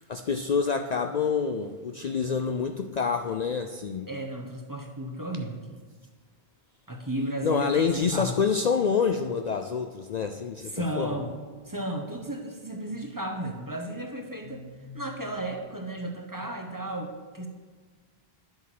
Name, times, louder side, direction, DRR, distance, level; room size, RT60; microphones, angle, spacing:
voice 1, 0.0-4.1 7.4-11.2 14.6-15.0, left 5 dB, 50° left, 6 dB, 0.6 m, -27 dB
voice 2, 4.1-5.8 6.9-8.3 10.6-11.3 11.7-14.6 14.9-17.5, right 1 dB, 20° right, 3 dB, 1.2 m, -34 dB
10.5 x 7.8 x 6.0 m, 1.5 s
omnidirectional pair, 1.0 m